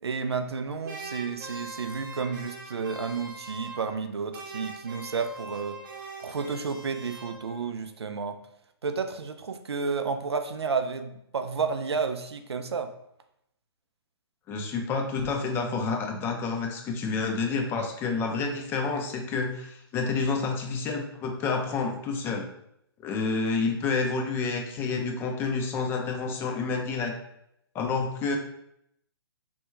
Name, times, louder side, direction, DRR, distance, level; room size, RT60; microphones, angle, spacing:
voice 1, 0.0-5.8 6.2-8.4 8.8-12.9, right 5 dB, 85° right, 8 dB, 0.4 m, -31 dB
sound 1, 0.8-4.1 4.3-7.7, right 3 dB, 50° right, 0.8 m, -42 dB
voice 2, 14.5-22.5 23.0-27.2 27.7-28.4, left 4 dB, 15° left, 2 dB, 0.4 m, -29 dB
3.4 x 2.2 x 3.1 m, 0.77 s
figure-of-eight pair, 130°, 13 cm